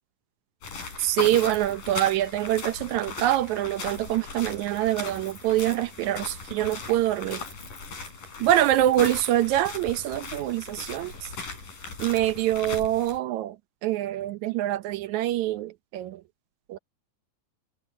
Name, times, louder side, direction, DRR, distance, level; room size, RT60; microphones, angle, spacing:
sound 1, 0.6-13.2, left 4 dB, 65° left, 8.6 m, -38 dB
voice 1, 1.0-7.4 8.4-11.1 12.0-13.6 13.8-16.2 16.7-16.8, right 13 dB, 75° right, 1.8 m, -25 dB
omnidirectional pair, 4.0 m